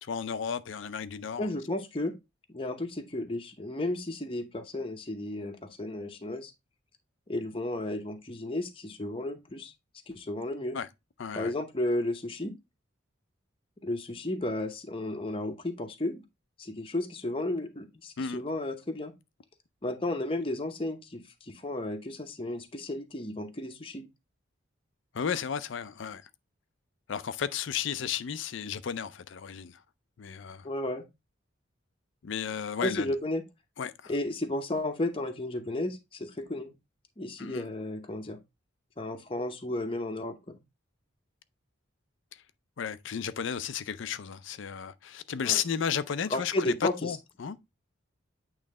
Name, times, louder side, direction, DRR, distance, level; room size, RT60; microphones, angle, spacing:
voice 1, 0.0-1.5 10.7-10.9 11.2-11.5 18.2-18.4 25.1-26.3 27.1-29.8 30.2-30.7 32.2-33.1 33.8-34.1 37.4-37.7 42.8-46.5 46.8-47.6, left 7 dB, 65° left, 0.4 m, -33 dB
voice 2, 1.4-2.1 2.5-6.5 7.3-9.7 10.1-10.8 11.3-12.5 13.8-16.2 16.6-19.1 19.8-24.1 30.6-31.0 32.8-33.4 34.1-36.7 37.2-38.4 39.0-40.6 45.4-45.6 46.3-47.1, left 1 dB, 25° left, 0.8 m, -33 dB
8.6 x 3.1 x 3.6 m
head